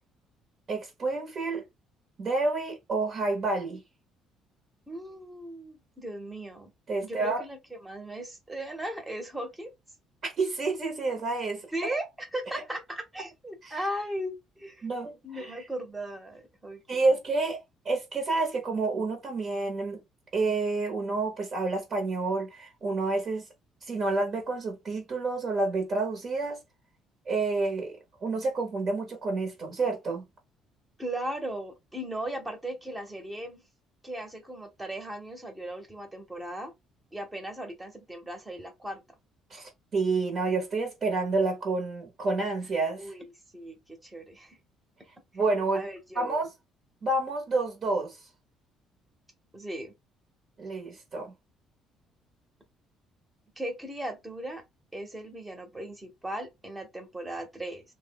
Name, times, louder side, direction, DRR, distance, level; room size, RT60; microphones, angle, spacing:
voice 1, 0.7-1.6 2.2-3.8 6.9-7.4 10.2-11.7 12.5-12.6 13.6-13.7 14.8-15.5 16.9-17.6 17.8-20.0 20.3-23.5 23.8-26.6 27.3-30.2 39.5-43.1 45.3-45.8 46.1-46.5 47.0-48.2 50.6-51.3, right 3 dB, 35° right, 1.0 m, -29 dB
voice 2, 4.9-6.7 7.0-9.7 11.7-14.9 15.2-17.0 31.0-33.6 34.0-36.7 37.1-39.0 43.0-44.6 45.7-46.4 49.5-49.9 53.6-54.6 54.9-57.8, right 1 dB, 10° right, 1.0 m, -37 dB
3.0 x 2.2 x 3.8 m
cardioid pair, 140°, 0 cm